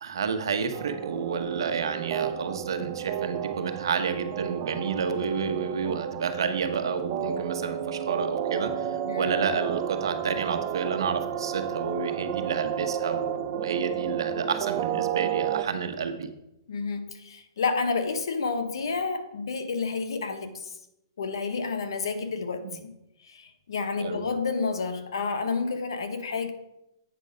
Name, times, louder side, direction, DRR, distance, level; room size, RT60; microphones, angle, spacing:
voice 1, 0.0-16.3 22.6-22.8 24.0-24.2, right 6 dB, 75° right, 7 dB, 1.1 m, -30 dB
sound 1, 0.7-15.6, right 10 dB, 35° right, 0.5 m, -32 dB
voice 2, 16.7-20.7 21.2-22.9 23.2-26.5, left 4 dB, 80° left, 8 dB, 1.2 m, -30 dB
8.2 x 5.4 x 5.1 m, 0.86 s
hypercardioid pair, 155°, 2 cm